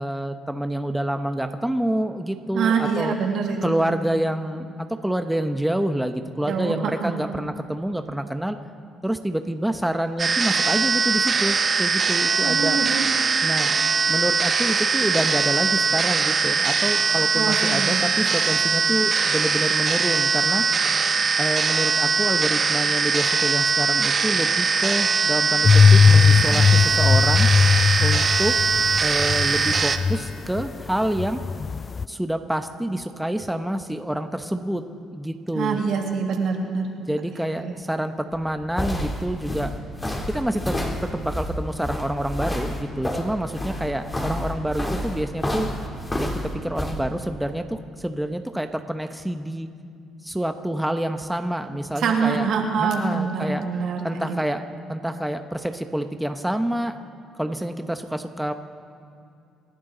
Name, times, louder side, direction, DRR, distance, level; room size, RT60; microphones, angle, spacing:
voice 1, 0.0-3.1 3.6-8.6 9.0-12.8 13.4-13.7 14.1-20.6 21.4-27.5 28.0-28.5 29.0-31.4 32.1-34.8 35.1-35.8 37.1-39.7 40.3-40.8 41.1-45.7 46.2-49.7 50.2-52.5 52.8-53.6 54.0-54.6 54.9-57.0 57.3-58.5, right 1 dB, 5° right, 7 dB, 1.0 m, -27 dB
voice 2, 2.5-4.0 6.5-7.1 12.4-13.0 17.3-18.0 35.5-36.9 37.6-37.8 52.0-54.4, right 6 dB, 70° right, 2 dB, 2.3 m, -25 dB
sound 1, 10.2-30.0, right 5 dB, 40° right, 1.0 m, -21 dB
sound 2, 25.6-30.7 30.9-32.0, left 5 dB, 35° left, 0.3 m, -18 dB
sound 3, 38.3-47.0, left 1 dB, 20° left, 3.3 m, -29 dB
28.0 x 11.5 x 4.0 m, 2.4 s
supercardioid pair, 75°, 0 cm